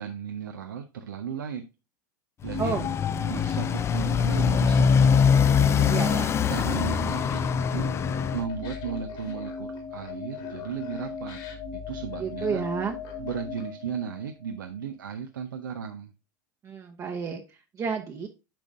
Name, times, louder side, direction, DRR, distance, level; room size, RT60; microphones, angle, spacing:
voice 1, 0.0-1.7 2.4-2.8 3.3-11.4 11.7-12.6 13.2-16.1, right 7 dB, 90° right, 5 dB, 0.6 m, -36 dB
sound 1, 2.4-14.5, left 5 dB, 45° left, 1.8 m, -38 dB
Motorcycle, 2.4-8.4, left 6 dB, 25° left, 0.4 m, -23 dB
voice 2, 2.6-2.9 5.9-6.4 12.2-13.0 16.6-18.3, right 6 dB, 30° right, 1 dB, 0.9 m, -31 dB
Laughter, 5.8-13.9, left 6 dB, 65° left, 2.7 m, -49 dB
8.8 x 5.2 x 2.5 m, 0.28 s
hypercardioid pair, 95°, 10 cm